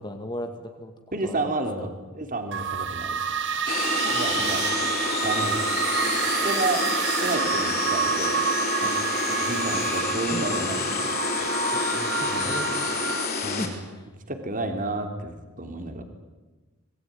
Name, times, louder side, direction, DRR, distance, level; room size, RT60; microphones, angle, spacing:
voice 1, 0.0-0.9 1.2-1.4 4.3-4.8 8.8-9.1 10.1-10.9 11.7-13.0 13.6-14.1, left 1 dB, 20° left, 5 dB, 2.3 m, -38 dB
voice 2, 1.1-1.9 2.1-3.4 4.1-4.6 5.2-5.6 6.3-8.4 8.8-11.8 12.3-12.5 13.4-13.8 14.3-16.0, right 2 dB, 35° right, 6 dB, 3.1 m, -31 dB
sound 1, 2.5-13.3, right 6 dB, 55° right, 1.9 m, -28 dB
sound 2, 3.7-13.7, left 4 dB, 40° left, 4.9 m, -29 dB
26.0 x 21.0 x 9.5 m, 1.2 s
head